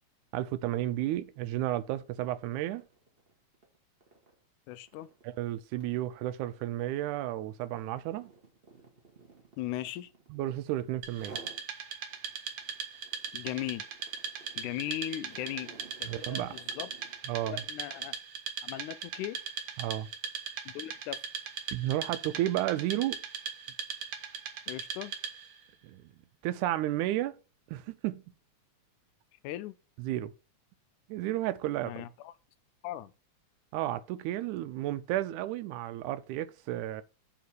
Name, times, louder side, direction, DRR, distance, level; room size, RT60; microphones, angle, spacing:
voice 1, 0.3-2.8 5.2-8.3 10.3-11.4 16.1-16.6 17.3-17.6 19.8-20.1 21.7-23.2 25.8-26.0 26.4-27.4 27.7-28.2 30.0-30.3 31.1-32.1 33.7-37.0, right 14 dB, 90° right, 2.1 m, -32 dB
sound 1, 1.7-1.8 2.2-10.6 11.1-11.7 12.1-17.3, right 3 dB, 35° right, 0.9 m, -56 dB
voice 2, 4.7-5.1 9.6-10.1 13.3-13.9 14.6-16.9 17.4-18.2 18.6-19.4 20.7-21.2 24.7-25.1 29.4-29.8 31.8-32.3 32.8-33.1, left 14 dB, 85° left, 2.1 m, -38 dB
Wood, 11.0-25.6, right 7 dB, 60° right, 1.5 m, -39 dB
6.9 x 3.6 x 6.2 m
omnidirectional pair, 3.4 m